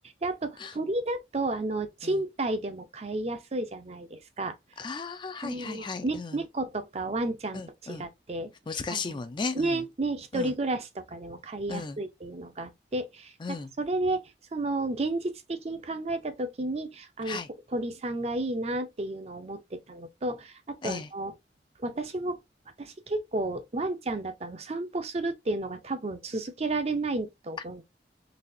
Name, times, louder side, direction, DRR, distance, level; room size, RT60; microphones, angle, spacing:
voice 1, 0.2-4.6 5.4-7.6 7.9-8.5 8.9-9.2 9.5-13.3 13.8-17.4 17.7-21.3 21.8-22.4 22.8-27.8, right 2 dB, 35° right, 0.5 m, -32 dB
voice 2, 4.8-6.4 7.5-8.0 8.7-9.8 10.3-10.5 11.7-12.0 13.4-13.7 17.2-17.5 20.8-21.1, left 4 dB, 25° left, 0.4 m, -35 dB
4.0 x 2.8 x 2.6 m
head